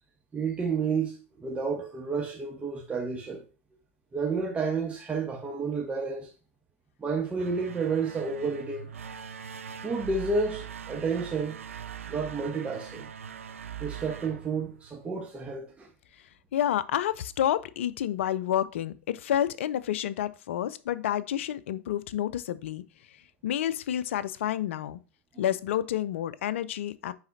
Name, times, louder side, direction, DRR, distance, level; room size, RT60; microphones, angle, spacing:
voice 1, 0.3-3.4 4.1-6.3 7.0-8.9 9.8-11.7 12.1-13.1 13.8-15.9, right 4 dB, 20° right, 1.3 m, -30 dB
sound 1, 7.2-15.2, right 8 dB, 80° right, 0.5 m, -42 dB
voice 2, 16.5-22.8 23.4-25.0 25.4-27.1, left 11 dB, 65° left, 0.5 m, -29 dB
9.6 x 4.0 x 2.8 m
figure-of-eight pair, 90°, 7 cm